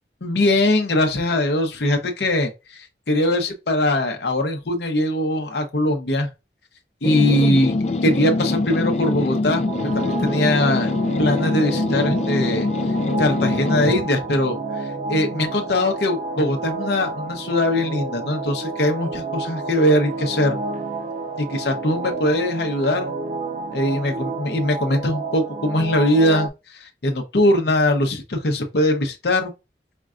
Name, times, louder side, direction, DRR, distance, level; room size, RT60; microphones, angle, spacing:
voice 1, 0.2-6.3 7.0-7.7 8.0-9.6 9.9-10.9 11.2-12.7 13.2-20.6 21.4-23.1 23.7-29.5, left 1 dB, 65° left, 0.8 m, -21 dB
sound 1, 7.0-14.1, left 2 dB, 35° left, 0.4 m, -23 dB
sound 2, 9.7-26.5, right 3 dB, 40° right, 0.3 m, -30 dB
5.2 x 2.3 x 2.4 m
head